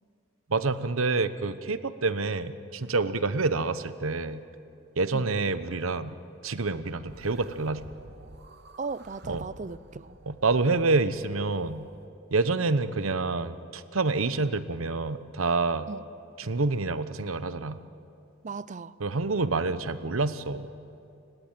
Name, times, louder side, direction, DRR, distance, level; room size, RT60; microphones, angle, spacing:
voice 1, 0.5-4.4 5.0-6.1 6.4-7.8 9.3-9.4 10.3-11.9 12.3-15.9 16.4-17.8 19.0-20.7, right 3 dB, 85° right, 13 dB, 1.0 m, -27 dB
sound 1, 7.0-12.1, right 2 dB, 55° right, 1.1 m, -50 dB
voice 2, 8.8-10.2 15.9-16.0 18.4-19.0, right 4 dB, 35° right, 17 dB, 0.5 m, -37 dB
29.5 x 17.0 x 9.1 m, 2.6 s
head